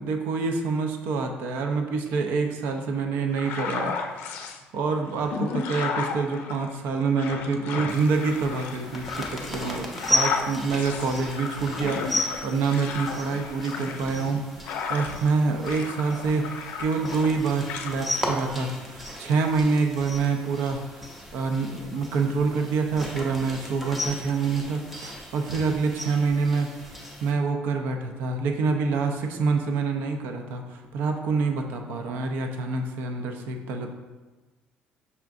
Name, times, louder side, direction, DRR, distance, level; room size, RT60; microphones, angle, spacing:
voice 1, 0.0-33.9, right 4 dB, 70° right, 4 dB, 0.5 m, -27 dB
sound 1, 3.3-4.6 5.1-15.3 15.6-17.4 17.7-17.9, left 5 dB, 70° left, 0.4 m, -34 dB
sound 2, 7.9-27.3, left 1 dB, 5° right, 0.5 m, -35 dB
5.6 x 3.5 x 2.5 m, 1.2 s
cardioid pair, 165°, 3 cm